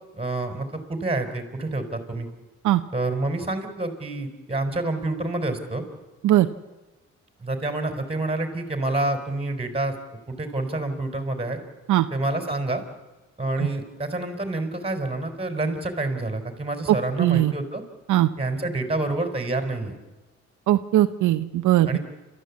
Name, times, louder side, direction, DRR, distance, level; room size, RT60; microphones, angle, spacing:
voice 1, 0.1-2.3 2.9-5.8 7.4-9.9 10.3-11.6 12.1-12.8 13.4-17.8 18.4-19.9 21.9-22.0, right 2 dB, 20° right, 6 dB, 4.3 m, -28 dB
voice 2, 17.2-17.5 18.1-18.3 20.7-22.0, right 14 dB, 80° right, 8 dB, 0.9 m, -19 dB
28.5 x 13.5 x 8.6 m, 1.1 s
cardioid pair, 90°, 30 cm